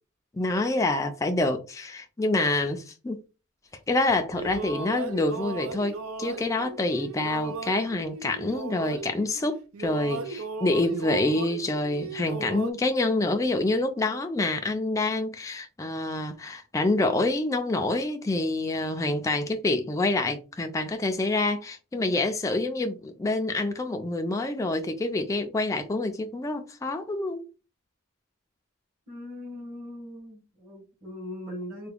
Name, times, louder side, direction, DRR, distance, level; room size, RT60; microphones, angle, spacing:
voice 1, 0.3-3.2 3.9-27.4, left 2 dB, 15° left, 0.3 m, -27 dB
sound 1, 4.1-9.4 9.7-12.7, right 4 dB, 80° right, 0.5 m, -36 dB
voice 2, 29.1-31.9, left 1 dB, 45° right, 1.5 m, -40 dB
3.4 x 2.2 x 3.4 m
head